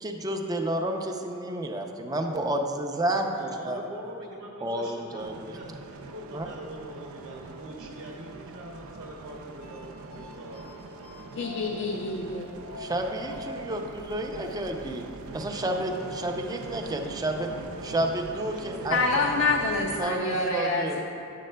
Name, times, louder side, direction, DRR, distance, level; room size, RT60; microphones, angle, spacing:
voice 1, 0.0-3.8 4.6-5.5 6.3-6.5 12.8-17.5 17.8-19.0 20.0-21.0, right 1 dB, 20° right, 3 dB, 0.4 m, -30 dB
voice 2, 3.3-10.6 18.5-19.5, right 1 dB, 55° right, -3 dB, 0.8 m, -43 dB
sound 1, 5.2-20.1, right 3 dB, 75° right, 0.4 m, -43 dB
sound 2, 6.0-20.4, left 1 dB, 85° left, 1.2 m, -47 dB
voice 3, 11.4-12.5 18.9-21.0, left 3 dB, 60° left, 1 dB, 0.5 m, -27 dB
9.6 x 7.4 x 2.2 m, 2.9 s
head